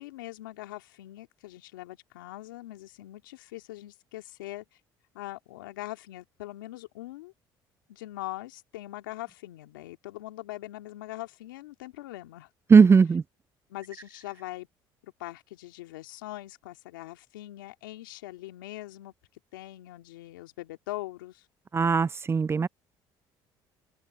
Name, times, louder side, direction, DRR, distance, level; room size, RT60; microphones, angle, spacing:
voice 1, 0.0-4.7 5.1-7.3 7.9-12.5 13.7-14.7 15.0-19.1 19.5-21.4, left 17 dB, 90° left, 2.4 m, -42 dB
voice 2, 12.7-13.2 21.7-22.7, right 5 dB, 25° right, 0.3 m, -18 dB
open air
hypercardioid pair, 65°, 11 cm